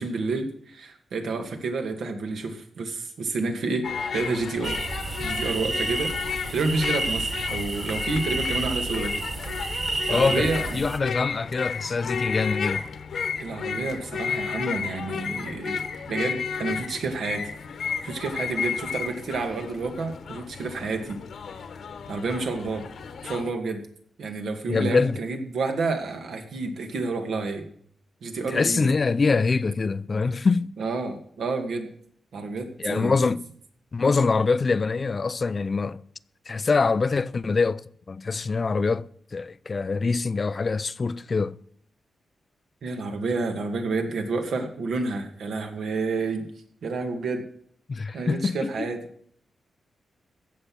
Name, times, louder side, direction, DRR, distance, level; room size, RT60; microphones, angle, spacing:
voice 1, 0.0-3.9 4.1-4.8 5.2-6.1 6.5-9.2 10.1-10.7 13.4-15.8 16.1-17.4 18.0-21.2 22.1-22.8 23.2-23.8 24.2-27.7 28.2-28.9 30.8-31.9 32.3-33.1 42.8-46.5 46.8-47.4 48.1-49.0, right 3 dB, 75° right, 2.3 m, -29 dB
sound 1, 3.8-23.5, left 6 dB, 65° left, 1.2 m, -32 dB
sound 2, 4.6-11.0, right 3 dB, 30° right, 0.8 m, -31 dB
voice 2, 10.1-12.9 24.7-25.2 28.5-30.7 32.8-33.5 33.9-36.0 36.5-37.8 38.1-41.6 47.9-48.9, left 4 dB, 35° left, 0.4 m, -24 dB
16.0 x 6.8 x 6.0 m
wide cardioid pair, 135°, 0 cm